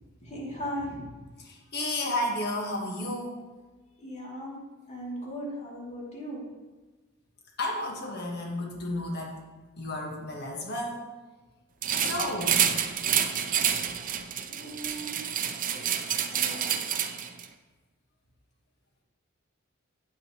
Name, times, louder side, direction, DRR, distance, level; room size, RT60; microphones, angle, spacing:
voice 1, 0.2-1.1 4.0-4.6 4.9-6.5 14.4-15.2 15.7-15.9 16.3-16.7, equal, 35° left, -5 dB, 2.7 m, -38 dB
voice 2, 1.4-3.5 7.6-9.4 9.8-11.1 12.0-12.7, left 1 dB, 50° left, -1 dB, 1.6 m, -32 dB
sound 1, 11.8-17.5, right 9 dB, 40° right, 0.5 m, -28 dB
8.9 x 8.6 x 3.1 m, 1.3 s
head